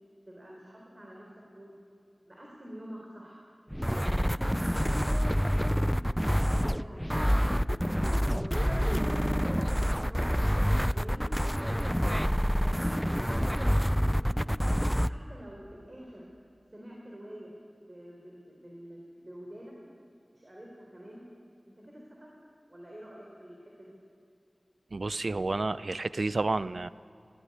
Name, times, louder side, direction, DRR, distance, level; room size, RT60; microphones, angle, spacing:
voice 1, 0.3-1.8 2.3-3.4 3.8-7.1 7.4-7.8 8.2-9.4 9.7-10.4 10.9-12.3 12.6-14.6 15.0-16.3 16.7-17.5 17.8-19.8 20.3-21.2 21.9-22.3 22.7-24.0, equal, 40° right, -2 dB, 3.9 m, -46 dB
sound 1, 3.7-15.1, equal, ahead, 0.5 m, -27 dB
voice 2, 24.9-26.9, right 3 dB, 75° right, 16 dB, 0.5 m, -30 dB
17.0 x 17.0 x 9.8 m, 2.5 s
wide cardioid pair, 40°, 0 cm